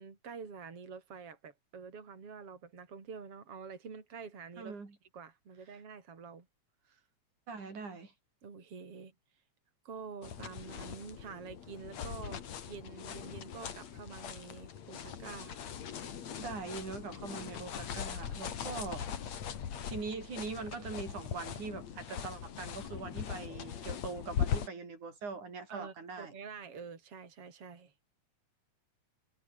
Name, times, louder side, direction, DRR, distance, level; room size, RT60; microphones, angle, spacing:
voice 1, 0.0-4.8 5.1-6.5 6.8-7.0 8.4-9.1 9.8-12.4 12.7-15.6 25.7-27.9, right 5 dB, 50° right, 4.7 m, -47 dB
voice 2, 4.6-5.0 7.5-8.1 16.4-19.2 19.9-26.3, right 4 dB, 85° right, 7.1 m, -42 dB
sound 1, 10.2-24.7, left 8 dB, 65° left, 3.3 m, -40 dB
omnidirectional pair, 3.4 m